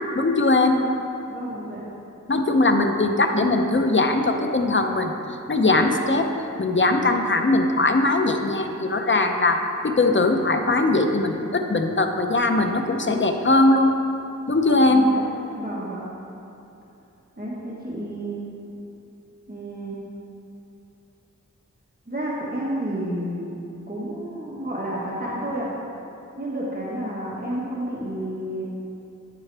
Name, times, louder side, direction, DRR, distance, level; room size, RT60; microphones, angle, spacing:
voice 1, 0.1-0.8 2.3-5.1 5.5-6.3 6.6-13.9 14.5-15.0, left 2 dB, 40° left, 5 dB, 0.7 m, -20 dB
voice 2, 1.3-1.8 14.9-15.2 15.5-16.1 17.4-18.4 19.5-20.0 22.1-23.5 23.9-25.7 26.4-28.6, right 1 dB, 30° right, -6 dB, 1.4 m, -30 dB
9.5 x 8.4 x 3.4 m, 2.8 s
wide cardioid pair, 55°, 31 cm